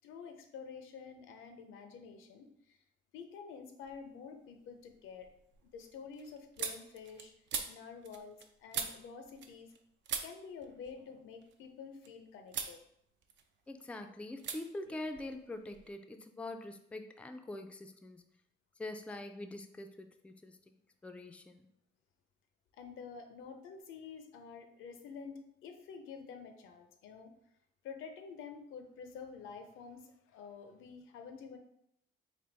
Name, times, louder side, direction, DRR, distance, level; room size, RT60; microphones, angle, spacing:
voice 1, 0.0-2.8 3.1-5.3 5.6-7.3 7.7-9.7 10.2-12.8 22.7-27.3 27.8-31.6, left 6 dB, 90° left, 7 dB, 0.5 m, -49 dB
sound 1, 3.8-4.4 4.7-9.8 10.0-12.1 12.5-12.8 13.1-13.9 14.4-14.6 14.8-15.9, right 6 dB, 70° right, 0.5 m, -43 dB
voice 2, 13.7-18.2 18.8-20.6 21.0-21.7, left 2 dB, 5° left, 7 dB, 0.3 m, -44 dB
3.5 x 2.5 x 3.9 m, 0.76 s
cardioid pair, 90°, 20 cm